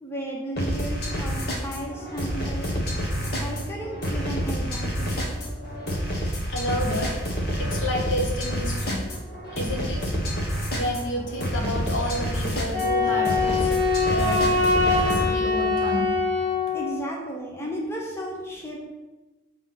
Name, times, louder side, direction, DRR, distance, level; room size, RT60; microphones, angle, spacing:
voice 1, 0.0-2.8 3.4-5.5 16.7-18.9, right 1 dB, 15° left, -1 dB, 0.9 m, -34 dB
sound 1, 0.6-15.3, equal, 50° left, 1.2 m, -28 dB
voice 2, 6.5-7.1 7.6-9.1 9.5-10.1 10.7-13.8 14.1-16.1, equal, 75° left, 0 dB, 1.3 m, -30 dB
Wind instrument woodwind instrument, 12.7-17.0, left 4 dB, 35° right, 1.3 m, -23 dB
5.7 x 3.5 x 5.7 m, 1.1 s
head